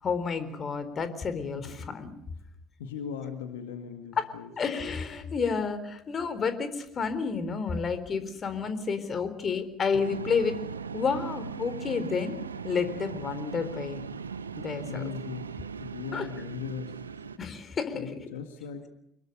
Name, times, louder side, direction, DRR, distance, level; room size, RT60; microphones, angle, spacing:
voice 1, 0.0-2.1 4.2-4.3 4.6-10.5 10.9-12.4 12.6-14.0 14.6-15.0 16.1-16.3 17.4-18.1, left 5 dB, 35° left, 11 dB, 4.0 m, -30 dB
voice 2, 2.8-4.5 14.9-17.0 17.9-18.9, left 7 dB, 70° left, 7 dB, 2.2 m, -38 dB
sound 1, 10.0-17.4, right 6 dB, 85° right, 0.9 m, -39 dB
26.5 x 22.0 x 6.8 m, 0.79 s
figure-of-eight pair, 60°, 0 cm